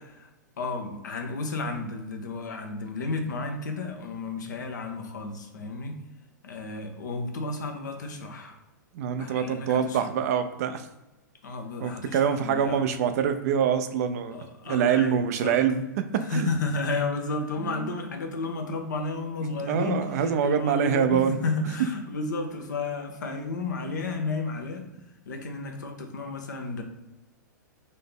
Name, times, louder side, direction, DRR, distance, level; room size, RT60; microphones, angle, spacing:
voice 1, 0.6-6.0 6.4-8.6 9.2-10.0 11.4-12.8 14.3-15.6 16.2-24.8 25.3-26.8, left 3 dB, 70° left, 5 dB, 0.9 m, -32 dB
voice 2, 8.9-10.9 11.8-14.4 14.7-15.8 16.3-16.5 17.6-18.0 19.4-21.7, right 8 dB, 55° right, 8 dB, 0.5 m, -25 dB
4.2 x 2.8 x 3.6 m, 1.0 s
figure-of-eight pair, 105°, 10 cm